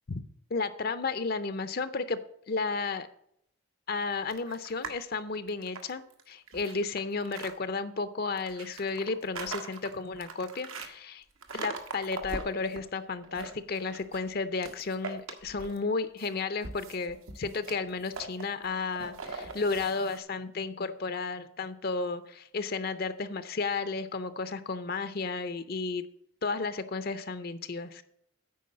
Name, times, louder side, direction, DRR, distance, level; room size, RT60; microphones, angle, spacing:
voice 1, 0.5-2.2 2.5-3.1 3.9-11.2 11.5-26.0 26.4-28.0, left 4 dB, 45° left, 12 dB, 0.5 m, -33 dB
sound 1, 4.3-5.1 5.5-7.5 8.4-10.9 11.4-12.8 13.2-14.3 14.6-15.9 16.2-20.2, right 3 dB, 80° right, 1.2 m, -41 dB
9.3 x 4.8 x 7.6 m, 0.71 s
head